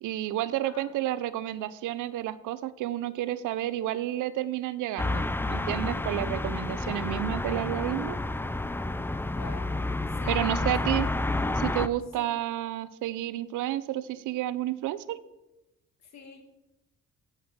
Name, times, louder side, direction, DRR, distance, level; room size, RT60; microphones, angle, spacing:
voice 1, 0.0-8.2 10.3-11.1 11.6-15.2, right 13 dB, 85° right, 16 dB, 0.7 m, -31 dB
sound 1, 5.0-11.9, left 2 dB, 5° left, 0.5 m, -30 dB
voice 2, 9.4-9.7 10.2-10.7 11.1-11.2 12.2-12.4 16.0-16.4, left 4 dB, 65° left, 4 dB, 2.8 m, -45 dB
9.4 x 8.2 x 7.4 m, 0.99 s
cardioid pair, 90°, 30 cm